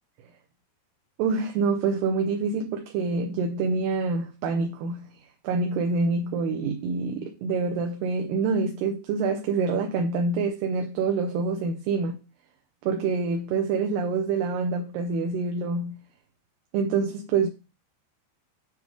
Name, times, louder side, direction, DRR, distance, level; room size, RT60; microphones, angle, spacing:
voice 1, 1.2-12.2 12.8-16.0 16.7-17.5, right 4 dB, 80° right, 2.5 m, -26 dB
7.9 x 3.5 x 4.7 m
omnidirectional pair, 5.3 m